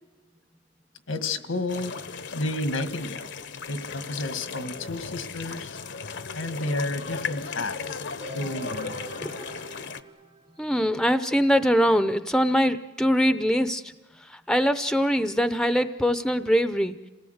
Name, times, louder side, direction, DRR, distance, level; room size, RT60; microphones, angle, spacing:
voice 1, 1.1-2.0 2.3-3.3 3.7-5.8 6.3-8.0 8.3-9.1, left 2 dB, 90° left, 9 dB, 1.7 m, -31 dB
sound 1, 1.7-10.0, left 5 dB, 65° left, 0.9 m, -36 dB
sound 2, 8.2-10.9, right 2 dB, 35° right, 1.0 m, -44 dB
voice 2, 10.6-13.9 14.2-17.0, equal, 5° left, 11 dB, 0.6 m, -23 dB
27.5 x 18.0 x 8.0 m, 1.3 s
head